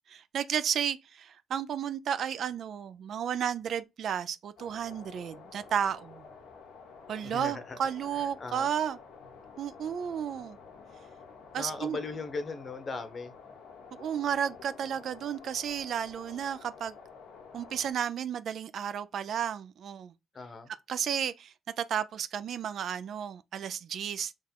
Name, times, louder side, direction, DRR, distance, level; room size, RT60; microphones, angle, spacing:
voice 1, 0.1-6.2 7.1-9.0 9.6-10.6 11.5-12.0 13.9-16.9 17.5-20.1 20.9-24.3, right 8 dB, 65° right, 0.3 m, -33 dB
sound 1, 4.6-17.9, left 5 dB, 85° left, 1.2 m, -50 dB
voice 2, 7.2-7.8 8.1-8.7 11.5-13.3 20.3-20.7, left 4 dB, 40° left, 0.8 m, -38 dB
3.7 x 2.4 x 4.4 m
cardioid pair, 90°, 0 cm